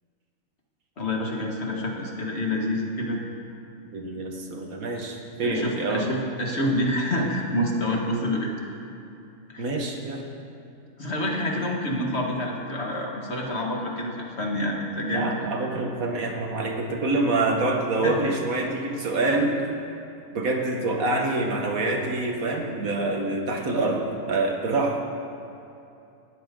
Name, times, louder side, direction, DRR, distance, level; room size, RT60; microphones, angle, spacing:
voice 1, 1.0-3.2 5.4-8.5 9.5-9.8 11.0-15.4 18.0-18.2, left 1 dB, 50° left, -1 dB, 2.1 m, -27 dB
voice 2, 3.9-6.1 9.6-10.3 15.1-19.6 20.3-25.0, right 2 dB, 85° right, 1 dB, 2.0 m, -26 dB
18.5 x 13.5 x 3.9 m, 2.6 s
omnidirectional pair, 1.4 m